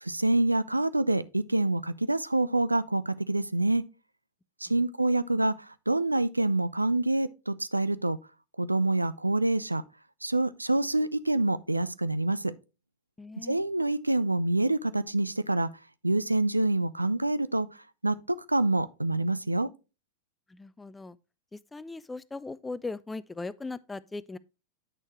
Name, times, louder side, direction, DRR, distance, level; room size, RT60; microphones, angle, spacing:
voice 1, 0.0-3.8 4.6-8.2 8.6-9.8 10.2-12.5 13.4-15.7 16.0-17.7 18.0-19.7, right 2 dB, 85° right, 0.4 m, -26 dB
voice 2, 13.2-13.6 20.5-21.2 21.5-24.4, left 3 dB, 10° left, 0.4 m, -39 dB
8.8 x 6.3 x 3.1 m
figure-of-eight pair, 90°, 0 cm